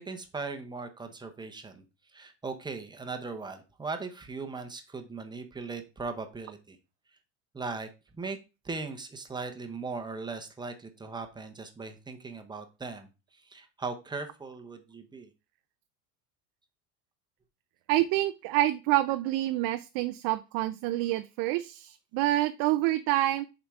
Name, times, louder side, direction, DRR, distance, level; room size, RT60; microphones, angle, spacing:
voice 1, 0.0-1.8 2.1-6.8 7.5-7.9 8.2-8.4 8.6-15.3, right 4 dB, 10° right, 6 dB, 0.8 m, -39 dB
voice 2, 17.9-23.4, right 15 dB, 55° right, 10 dB, 0.5 m, -27 dB
7.2 x 4.9 x 3.6 m, 0.29 s
cardioid pair, 155°, 41 cm